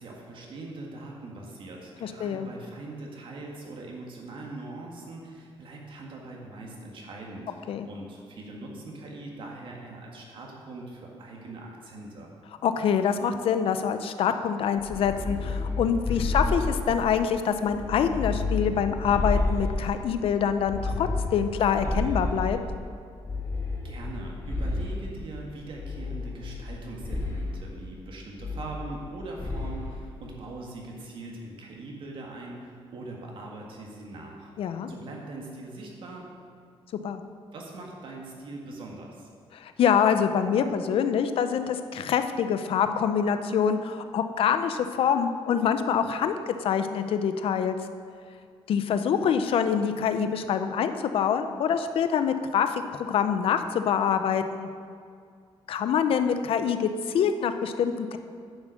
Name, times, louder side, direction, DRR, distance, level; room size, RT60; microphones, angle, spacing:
voice 1, 0.0-12.3 23.8-36.2 37.5-39.3, right 2 dB, 55° right, -1 dB, 1.7 m, -41 dB
voice 2, 2.0-2.5 7.7-7.9 12.6-22.6 34.6-34.9 37.0-37.2 39.5-47.7 48.7-54.7 55.7-58.2, left 7 dB, 65° left, 9 dB, 0.6 m, -25 dB
sound 1, 14.8-17.2 17.7-20.1 20.6-22.8 23.2-25.1 25.8-26.7 27.0-27.5 28.4-29.1 29.4-29.9, left 2 dB, 25° left, 1.5 m, -30 dB
9.6 x 7.6 x 6.4 m, 2.2 s
wide cardioid pair, 170°, 10 cm